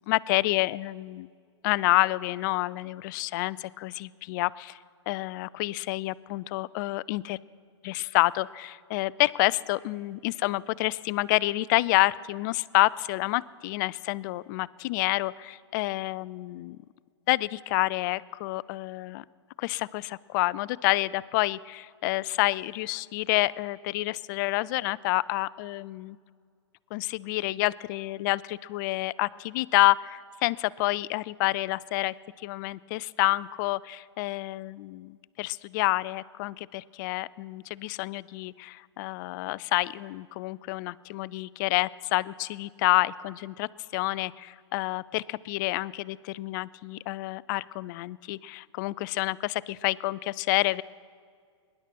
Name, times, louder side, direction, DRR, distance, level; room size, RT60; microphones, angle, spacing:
voice 1, 0.1-1.3 1.6-4.8 5.1-7.4 7.8-16.8 17.3-19.2 19.6-26.2 26.9-50.8, left 19 dB, 40° left, 20 dB, 0.4 m, -28 dB
22.5 x 10.5 x 4.5 m, 2.1 s
hypercardioid pair, 110°, 15 cm